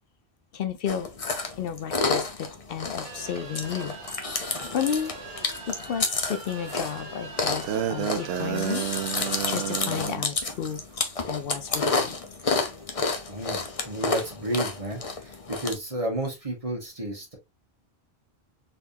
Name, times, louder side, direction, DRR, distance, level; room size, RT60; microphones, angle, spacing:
voice 1, 0.5-1.1 1.6-4.0 4.7-5.2 5.7-8.9 9.1-10.8 11.3-12.2, left 8 dB, 70° left, 0.7 m, -32 dB
Chewing mastication, 0.9-15.7, left 4 dB, 40° left, 0.7 m, -30 dB
sound 1, 3.0-9.8, right 4 dB, 55° right, 1.0 m, -42 dB
sound 2, 7.6-10.2, right 9 dB, 90° right, 0.8 m, -30 dB
voice 2, 12.9-17.3, right 1 dB, 35° right, 1.5 m, -32 dB
4.1 x 3.4 x 2.7 m
omnidirectional pair, 1.0 m